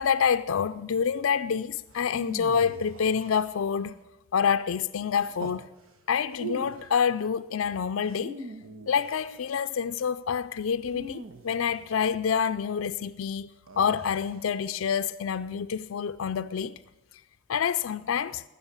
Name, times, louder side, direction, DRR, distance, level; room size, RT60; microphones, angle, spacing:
voice 1, 0.0-3.9 4.3-5.7 6.1-8.4 8.9-13.5 13.8-16.8 17.5-18.4, left 7 dB, 80° left, 0.4 m, -27 dB
sound 1, 1.9-3.9 5.1-5.6 6.3-7.0 8.0-9.4 10.9-12.1 13.7-14.4, right 2 dB, 80° right, 1.3 m, -42 dB
19.5 x 6.8 x 8.8 m
head